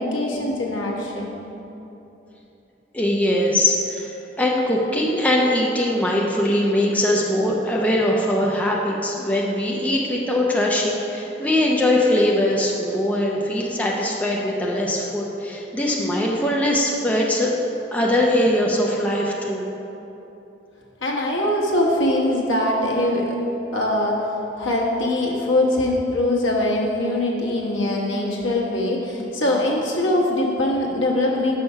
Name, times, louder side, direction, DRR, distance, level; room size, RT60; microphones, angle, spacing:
voice 1, 0.0-1.3 21.0-23.4 23.7-24.2 24.6-31.6, left 1 dB, 85° left, -2 dB, 1.1 m, -22 dB
voice 2, 2.9-17.5 17.9-19.7, left 1 dB, 5° left, -3 dB, 0.5 m, -21 dB
5.8 x 5.5 x 5.4 m, 3.0 s
head